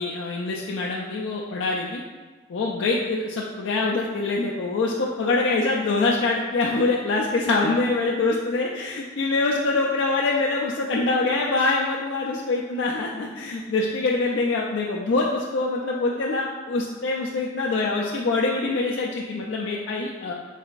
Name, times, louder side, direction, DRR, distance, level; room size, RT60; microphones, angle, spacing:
voice 1, 0.0-2.0 2.5-20.3, left 3 dB, 70° left, -3 dB, 0.4 m, -24 dB
4.7 x 3.2 x 2.5 m, 1.3 s
head